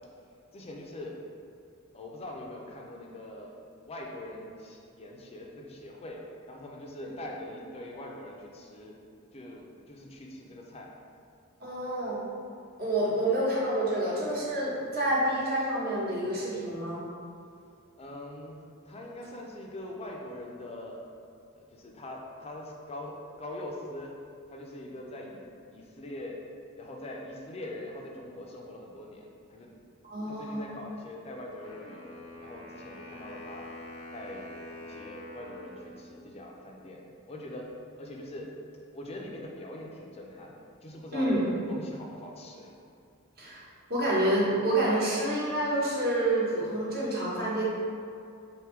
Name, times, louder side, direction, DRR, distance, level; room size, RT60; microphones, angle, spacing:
voice 1, 0.5-1.2 1.9-3.5 3.8-9.0 9.3-10.9 18.0-18.6 18.9-21.0 21.6-24.2 24.5-26.5 26.8-29.8 30.2-33.7 34.1-34.5 34.8-38.6 38.9-42.7, left 1 dB, 30° left, 0 dB, 0.5 m, -43 dB
voice 2, 11.6-12.2 12.8-17.0 30.0-30.6 41.1-41.4 43.4-43.6 43.9-47.6, right 1 dB, 45° right, -7 dB, 1.1 m, -28 dB
Wind instrument woodwind instrument, 31.6-36.6, left 2 dB, 75° left, 0.6 m, -46 dB
3.4 x 2.7 x 4.4 m, 2.4 s
head